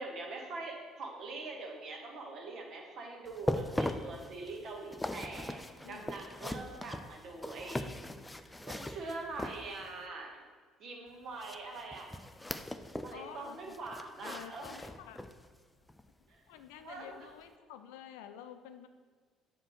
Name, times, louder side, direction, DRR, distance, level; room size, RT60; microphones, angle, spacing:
voice 1, 0.0-7.9 8.6-10.4 10.8-12.1 13.0-14.7 16.3-16.4 16.8-17.3, right 3 dB, 55° right, 1 dB, 1.7 m, -43 dB
sound 1, 3.3-10.0 11.4-13.2 13.5-15.5 15.9-16.0 16.6-16.7, left 1 dB, 10° left, 0.5 m, -40 dB
voice 2, 5.8-6.7 13.1-13.8 14.2-15.3 16.2-18.9, left 10 dB, 70° left, 8 dB, 0.5 m, -50 dB
7.4 x 4.5 x 6.4 m, 1.5 s
hypercardioid pair, 55°, 0 cm